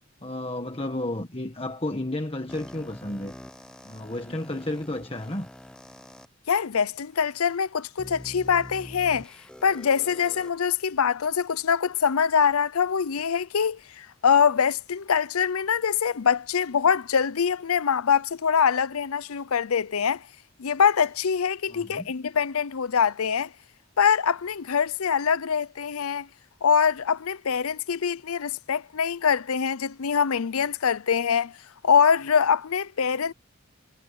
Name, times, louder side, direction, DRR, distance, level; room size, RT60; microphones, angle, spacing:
voice 1, 0.2-3.3 3.8-5.5 21.7-22.1, left 1 dB, 25° left, 1.6 m, -32 dB
sound 1, 2.5-6.3 7.0-7.1 8.0-10.5, equal, 5° left, 0.9 m, -45 dB
voice 2, 6.5-9.3 9.6-20.3 20.6-23.5 24.0-26.3 26.6-31.5 31.8-33.3, left 7 dB, 90° left, 0.6 m, -24 dB
head